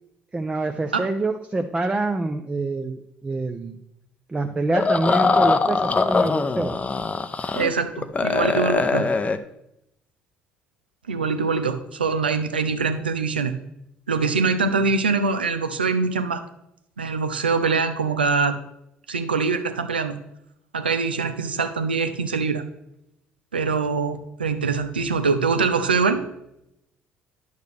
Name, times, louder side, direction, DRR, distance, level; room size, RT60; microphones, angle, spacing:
voice 1, 0.3-3.8 4.3-6.8, right 2 dB, 20° right, 5 dB, 0.6 m, -26 dB
sound 1, 4.7-7.7 8.0-9.4, left 4 dB, 25° left, 0.6 m, -22 dB
voice 2, 7.5-9.1 11.1-13.5 14.1-16.4 17.0-18.6 19.1-20.2 20.7-22.6 23.5-26.2, right 4 dB, 90° right, 9 dB, 0.5 m, -23 dB
10.5 x 6.6 x 3.3 m, 0.81 s
figure-of-eight pair, 55°, 5 cm